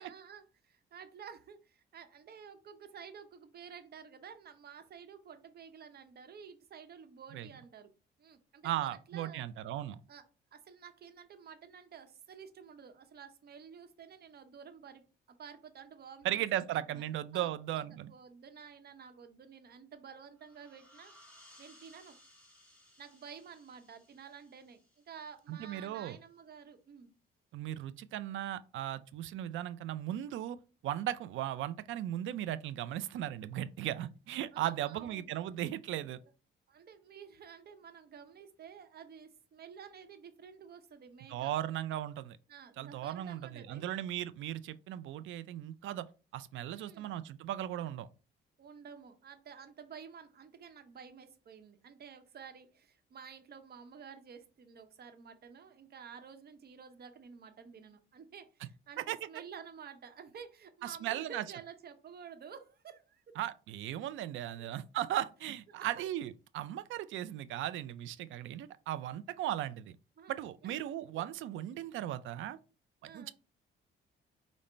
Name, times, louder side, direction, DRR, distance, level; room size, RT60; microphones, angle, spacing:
voice 1, 0.0-7.9 8.2-9.4 10.1-10.2 10.5-17.5 17.8-21.1 21.6-22.2 23.0-24.8 25.1-27.1 34.5-35.3 36.7-41.5 42.5-43.8 46.7-47.1 48.6-63.4 64.6-64.7 65.8-66.0 70.2-70.3 70.6-70.8 71.1-71.2 73.0-73.3, right 7 dB, 50° right, 0.8 m, -51 dB
voice 2, 8.6-10.0 16.2-18.1 25.5-26.2 27.5-30.6 30.8-36.2 41.3-42.4 42.8-46.1 46.3-48.1 59.0-59.2 60.8-61.5 63.4-69.9 70.3-72.6 73.0-73.3, right 12 dB, 75° right, 0.4 m, -37 dB
sound 1, 20.4-25.7, left 1 dB, 10° left, 1.6 m, -62 dB
5.2 x 2.1 x 4.3 m
cardioid pair, 90°, 20 cm